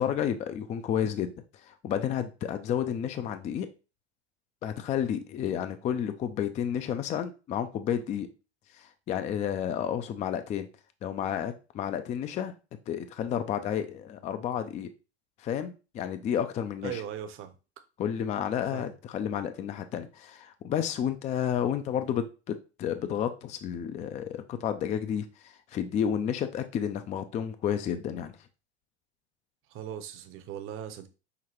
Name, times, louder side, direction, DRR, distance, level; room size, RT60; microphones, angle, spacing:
voice 1, 0.0-1.3 1.6-3.7 4.6-8.3 8.7-10.7 11.0-12.5 12.9-14.9 15.4-17.0 18.0-28.4, left 9 dB, 20° left, 0.4 m, -31 dB
voice 2, 16.8-17.5 18.7-18.9 29.7-31.1, right 9 dB, 40° right, 0.7 m, -39 dB
5.8 x 2.2 x 3.0 m
hypercardioid pair, 90°, 33 cm